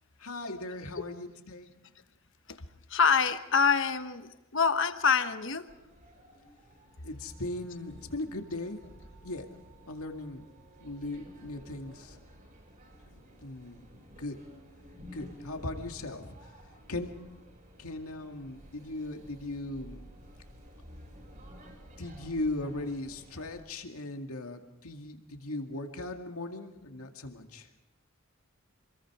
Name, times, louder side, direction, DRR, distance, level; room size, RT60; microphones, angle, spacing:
voice 1, 0.2-1.7 7.0-8.8 9.2-9.5 9.9-10.5 10.8-12.2 13.1-13.8 14.2-14.4 15.1-16.3 16.9-17.1 17.8-20.1 22.0-27.7, left 2 dB, 90° left, 4 dB, 2.2 m, -38 dB
voice 2, 2.9-5.7, left 6 dB, 60° left, 9 dB, 1.2 m, -26 dB
sound 1, 5.7-23.6, equal, 40° right, 5.3 m, -53 dB
27.5 x 21.5 x 4.9 m, 0.98 s
head